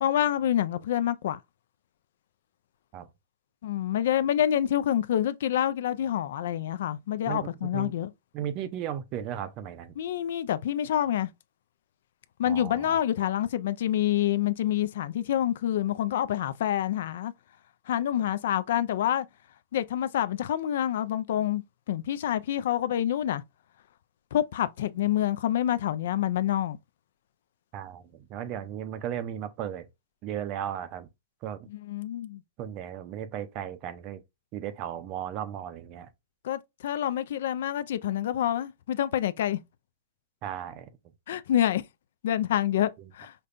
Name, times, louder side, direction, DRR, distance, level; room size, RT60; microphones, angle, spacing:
voice 1, 0.0-1.4 3.6-8.1 10.0-11.3 12.4-17.3 17.9-19.3 19.7-23.4 24.3-26.8 31.7-32.4 36.4-39.6 41.3-41.8 42.2-43.3, left 11 dB, 65° left, 0.3 m, -27 dB
voice 2, 7.3-7.9 8.3-9.9 12.5-13.0 27.7-29.9 30.2-31.1 31.4-31.6 32.6-34.2 34.5-36.1 40.4-40.9, right 10 dB, 35° right, 0.5 m, -35 dB
5.1 x 2.2 x 2.5 m
hypercardioid pair, 150°, 0 cm